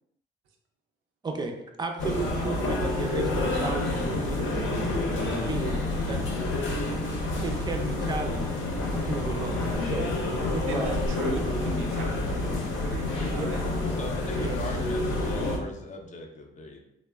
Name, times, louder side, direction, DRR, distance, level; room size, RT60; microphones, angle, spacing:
voice 1, 1.8-4.9 5.4-5.8 6.1-6.2 7.4-8.6 8.9-10.1 10.5-11.3 13.3-13.5 14.4-14.6, right 3 dB, 20° right, 3 dB, 0.4 m, -34 dB
sound 1, 2.0-15.6, left 2 dB, 80° left, 0.6 m, -28 dB
voice 2, 10.7-12.1 12.8-13.6, right 2 dB, 85° right, 2 dB, 0.5 m, -36 dB
voice 3, 13.9-16.8, left 2 dB, 40° left, 3 dB, 0.4 m, -39 dB
3.0 x 2.0 x 2.3 m, 0.84 s
cardioid pair, 90°, 20 cm